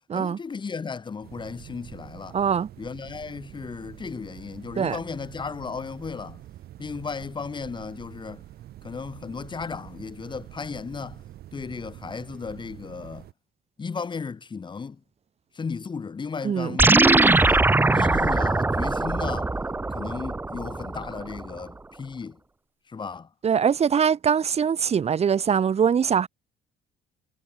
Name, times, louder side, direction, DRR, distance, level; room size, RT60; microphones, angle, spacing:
voice 1, 0.1-2.4 2.8-6.4 6.8-8.4 8.8-11.2 11.5-13.3 13.8-15.0 15.6-19.5 19.9-22.4 22.9-23.3, left 5 dB, 25° left, 1.8 m, -35 dB
sound 1, 1.2-13.3, right 13 dB, 70° right, 4.9 m, -46 dB
voice 2, 2.3-2.7 4.8-5.0 16.4-16.8 23.4-26.3, right 7 dB, 40° right, 1.7 m, -22 dB
sound 2, 16.8-21.4, right 2 dB, 10° right, 0.8 m, -21 dB
cardioid pair, 110°, 17 cm